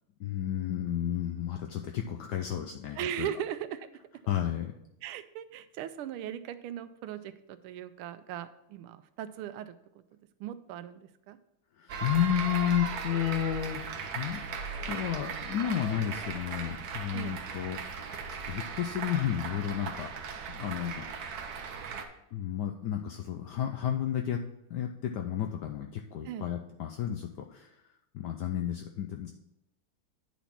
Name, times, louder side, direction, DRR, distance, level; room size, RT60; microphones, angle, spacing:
voice 1, 0.2-3.3 4.3-4.7 11.7-14.4 14.9-17.8 18.4-21.1 21.4-21.5 22.3-24.4 24.7-27.8 28.1-29.3, left 10 dB, 80° left, 3 dB, 0.9 m, -32 dB
voice 2, 3.0-3.9 5.0-10.0 10.4-11.4 17.1-17.4 26.2-26.5, right 10 dB, 85° right, 12 dB, 1.5 m, -38 dB
sound 1, 11.9-22.0, right 5 dB, 60° right, 1.1 m, -38 dB
9.3 x 4.2 x 5.8 m, 0.84 s
omnidirectional pair, 2.3 m